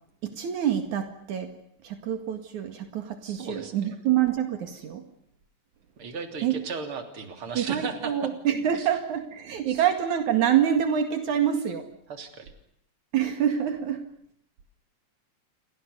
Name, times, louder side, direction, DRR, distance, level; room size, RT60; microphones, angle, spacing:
voice 1, 0.2-1.5 1.8-5.0 6.4-6.6 7.6-11.9 13.1-14.0, right 9 dB, 75° right, 6 dB, 3.5 m, -26 dB
voice 2, 3.2-4.0 6.0-8.3 8.8-8.9 9.7-9.8 12.1-12.5, right 5 dB, 45° right, 6 dB, 3.9 m, -36 dB
30.0 x 24.5 x 6.9 m, 0.67 s
omnidirectional pair, 3.4 m